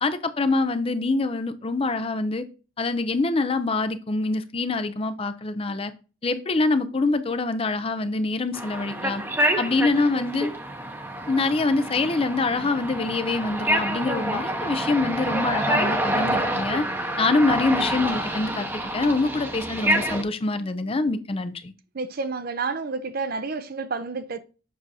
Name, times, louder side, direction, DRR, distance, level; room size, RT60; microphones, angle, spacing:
voice 1, 0.0-2.5 2.8-5.9 6.2-9.2 9.6-10.5 11.3-16.9 17.2-18.7 18.9-21.7, left 3 dB, 25° left, 0.4 m, -25 dB
sound 1, 8.5-20.2, right 1 dB, 10° right, 0.8 m, -27 dB
voice 2, 21.9-24.4, right 4 dB, 45° right, 0.5 m, -30 dB
7.4 x 6.1 x 2.7 m
head